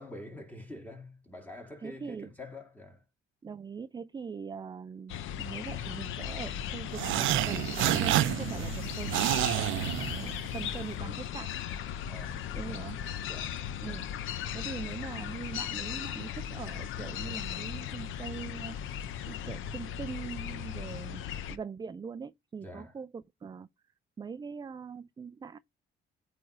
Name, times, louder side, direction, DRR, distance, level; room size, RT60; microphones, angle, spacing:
voice 1, 0.0-3.0 9.5-10.2 12.1-12.8 13.3-13.6 22.6-22.9, left 1 dB, 10° left, 2.3 m, -47 dB
voice 2, 1.8-2.3 3.4-9.1 10.1-11.5 12.5-13.0 13.8-23.7 24.2-25.6, right 6 dB, 20° right, 0.3 m, -42 dB
sound 1, 5.1-21.6, left 9 dB, 80° left, 0.6 m, -37 dB
sound 2, 6.9-10.6, right 14 dB, 80° right, 0.5 m, -29 dB
8.5 x 3.3 x 3.7 m
cardioid pair, 90°, 20 cm